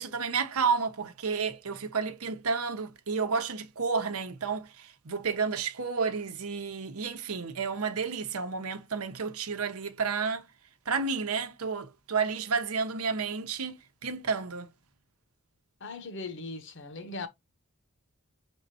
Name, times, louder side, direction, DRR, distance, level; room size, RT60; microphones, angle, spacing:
voice 1, 0.0-10.4 10.9-13.8 14.0-14.7, right 5 dB, 85° right, 0.8 m, -31 dB
voice 2, 15.8-17.3, left 3 dB, 55° left, 0.8 m, -39 dB
5.4 x 3.5 x 2.7 m
head